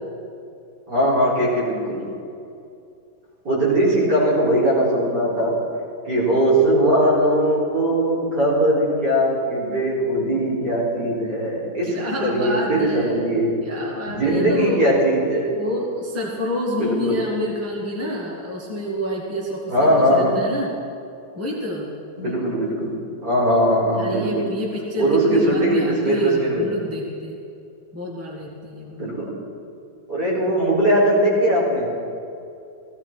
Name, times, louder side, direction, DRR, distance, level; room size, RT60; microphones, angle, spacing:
voice 1, 0.9-2.0 3.4-5.5 6.0-13.5 14.1-15.5 16.8-17.1 19.7-20.3 22.2-22.9 23.2-24.5 25.0-26.7 29.0-29.3 30.1-31.9, right 1 dB, 60° right, -8 dB, 5.0 m, -20 dB
voice 2, 11.9-13.2 13.6-14.8 15.5-20.7 21.4-21.9 23.8-27.4 27.9-29.1, equal, 10° right, -3 dB, 1.9 m, -28 dB
16.0 x 16.0 x 4.5 m, 2.5 s
omnidirectional pair, 2.0 m